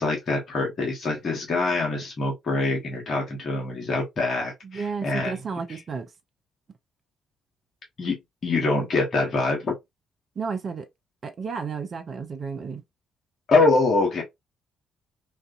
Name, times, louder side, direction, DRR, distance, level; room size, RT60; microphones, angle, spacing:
voice 1, 0.0-5.4 8.0-9.7 13.5-14.2, left 3 dB, 50° left, 1.0 m, -24 dB
voice 2, 4.6-6.1 10.4-10.9 11.2-12.8, right 5 dB, 45° right, 0.5 m, -32 dB
2.5 x 2.3 x 2.3 m
figure-of-eight pair, 40°, 0 cm